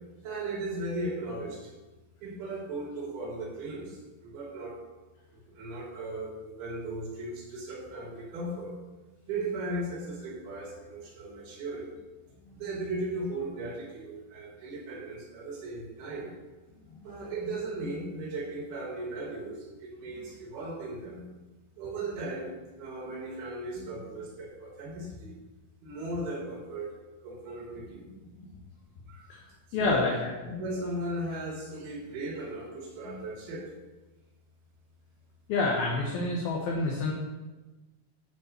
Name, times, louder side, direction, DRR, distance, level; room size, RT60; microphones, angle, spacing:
voice 1, 0.2-1.7 2.2-4.8 5.3-8.7 9.3-12.0 12.5-16.3 17.0-21.3 21.8-25.4 25.8-28.0 29.1-29.4 29.8-30.0 30.4-33.7, right 2 dB, 55° right, -5 dB, 5.1 m, -37 dB
voice 2, 29.7-30.3 33.1-33.2 35.5-37.1, left 3 dB, 65° left, -2 dB, 2.7 m, -28 dB
10.5 x 5.5 x 8.0 m, 1.2 s
omnidirectional pair, 5.4 m